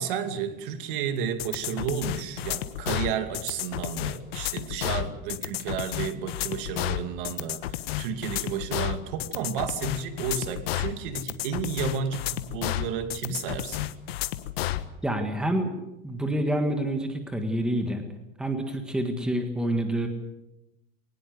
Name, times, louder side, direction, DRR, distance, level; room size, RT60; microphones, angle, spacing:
voice 1, 0.0-13.8, right 7 dB, 60° right, 9 dB, 2.5 m, -32 dB
sound 1, 1.4-14.9, left 14 dB, 85° left, 1.4 m, -31 dB
voice 2, 15.0-15.7 16.0-18.0 18.4-20.1, right 1 dB, 5° right, 5 dB, 1.7 m, -27 dB
22.0 x 19.5 x 8.1 m, 0.92 s
supercardioid pair, 175°, 29 cm